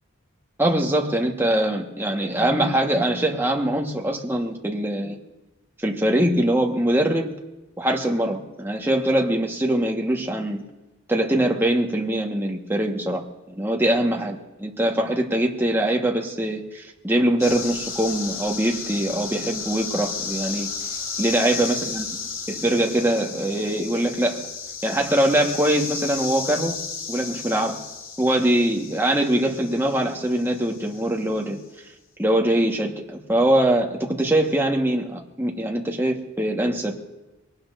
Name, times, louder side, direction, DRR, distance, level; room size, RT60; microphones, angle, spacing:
voice 1, 0.6-5.2 5.8-7.3 7.8-10.6 11.1-13.2 13.5-20.7 21.2-22.0 22.5-24.4 24.8-26.8 27.1-27.8 28.2-31.6 32.2-37.0, right 1 dB, 10° right, 0 dB, 1.4 m, -22 dB
sound 1, 17.4-31.4, left 5 dB, 80° left, 2.3 m, -34 dB
22.5 x 18.5 x 2.6 m, 1.0 s
head